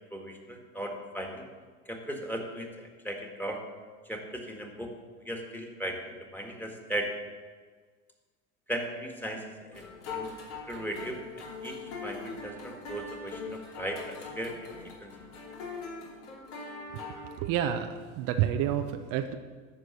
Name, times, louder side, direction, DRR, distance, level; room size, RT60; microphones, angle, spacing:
voice 1, 0.0-1.4 1.9-3.6 4.1-4.9 5.2-7.2 8.7-10.3 10.7-14.7 15.0-15.1, right 1 dB, 5° left, 2 dB, 1.9 m, -37 dB
sound 1, 9.7-17.4, left 4 dB, 70° left, 3.0 m, -41 dB
voice 2, 17.4-19.4, right 10 dB, 55° right, 7 dB, 0.7 m, -29 dB
11.5 x 4.7 x 8.0 m, 1.5 s
hypercardioid pair, 95°, 40 cm